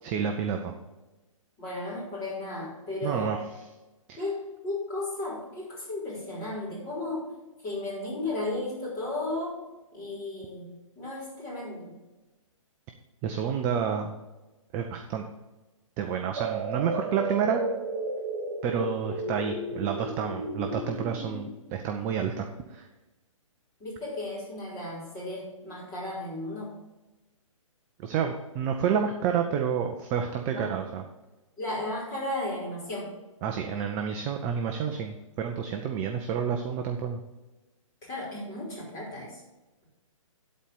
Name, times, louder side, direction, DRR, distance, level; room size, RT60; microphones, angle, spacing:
voice 1, 0.0-0.7 3.0-3.4 4.1-4.2 13.2-14.2 14.7-15.2 16.0-17.6 18.6-22.9 28.0-31.0 33.4-37.2, right 7 dB, 15° right, 4 dB, 0.3 m, -29 dB
voice 2, 1.6-3.4 4.1-7.3 7.6-9.6 9.9-11.9 23.8-26.7 30.5-30.8 31.6-33.1 38.0-39.4, left 2 dB, 20° left, -5 dB, 3.7 m, -34 dB
sound 1, 16.3-21.4, right 2 dB, 60° right, 1.5 m, -33 dB
11.0 x 4.3 x 6.9 m, 1.1 s
hypercardioid pair, 150°, 17 cm